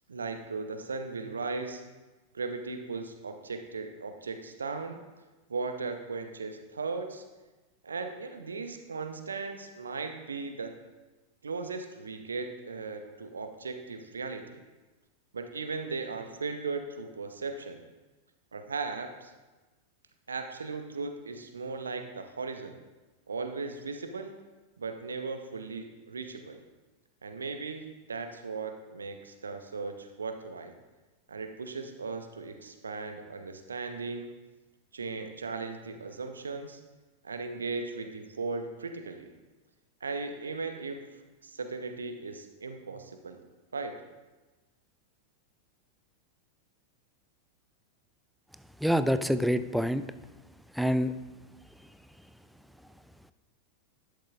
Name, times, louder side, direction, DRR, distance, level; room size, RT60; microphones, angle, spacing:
voice 1, 0.1-1.8 2.3-5.0 5.5-7.2 7.8-10.7 11.4-14.6 15.3-17.8 18.5-19.3 20.3-22.7 23.3-24.3 24.8-26.6 27.2-30.7 31.3-34.4 34.9-36.8 37.2-39.3 40.0-41.0 41.4-43.4 43.7-44.0, right 4 dB, 75° right, 7 dB, 0.8 m, -37 dB
voice 2, 48.8-50.0 50.8-51.1, equal, ahead, 12 dB, 0.4 m, -26 dB
12.0 x 10.5 x 2.5 m, 1.2 s
figure-of-eight pair, 90°, 0 cm